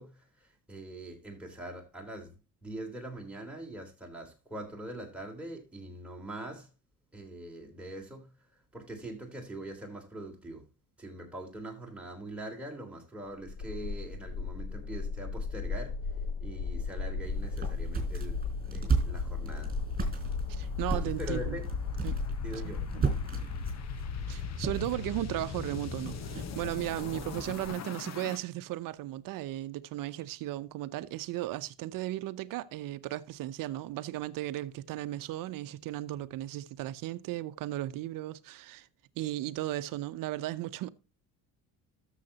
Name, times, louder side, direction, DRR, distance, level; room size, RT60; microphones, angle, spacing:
voice 1, 0.0-6.7 7.1-10.7 11.0-16.1 16.4-19.7 20.6-21.6 22.4-22.8, right 1 dB, 5° right, 3.7 m, -43 dB
sound 1, 13.5-28.4, left 5 dB, 50° left, 1.1 m, -36 dB
sound 2, 17.2-27.7, right 4 dB, 25° right, 4.3 m, -36 dB
voice 2, 20.5-21.6 22.0-22.2 22.6-23.1 24.3-38.9 39.2-40.9, right 15 dB, 70° right, 0.8 m, -36 dB
13.0 x 7.3 x 2.9 m
supercardioid pair, 90°, 35 cm